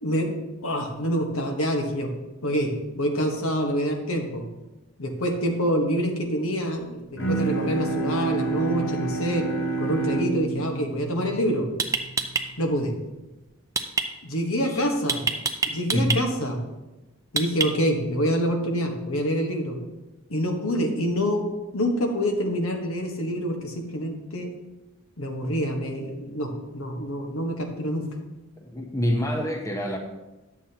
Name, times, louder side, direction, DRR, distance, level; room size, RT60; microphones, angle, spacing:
voice 1, 0.0-0.4 0.6-2.1 2.4-4.5 5.0-9.4 9.8-11.7 12.6-12.9 14.2-15.3 15.6-16.6 17.3-19.8 20.3-21.4 21.7-24.5 25.2-28.1, equal, 80° left, 2 dB, 1.3 m, -26 dB
Bowed string instrument, 7.2-12.6, right 3 dB, 55° left, 0.9 m, -29 dB
sound 1, 11.2-11.3 11.8-12.4 13.8-14.1 15.1-16.2 17.4-17.9, right 4 dB, 15° right, 0.4 m, -25 dB
voice 2, 28.6-30.0, equal, 15° left, 3 dB, 0.7 m, -26 dB
11.0 x 7.3 x 2.9 m, 1.0 s
head